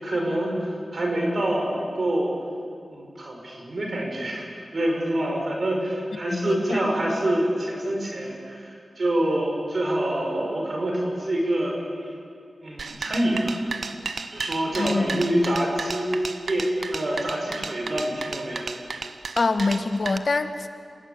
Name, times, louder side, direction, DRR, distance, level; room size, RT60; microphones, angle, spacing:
voice 1, 0.0-2.3 2.9-4.5 4.7-11.8 12.6-13.7 14.3-16.1 16.5-18.7, right 1 dB, 60° right, 0 dB, 5.9 m, -26 dB
voice 2, 6.3-6.8 14.8-15.3 19.4-20.7, left 3 dB, 60° left, 8 dB, 1.5 m, -25 dB
sound 1, 12.8-20.2, right 4 dB, 80° right, 1.0 m, -34 dB
27.0 x 17.5 x 8.8 m, 2.4 s
wide cardioid pair, 65°, 0 cm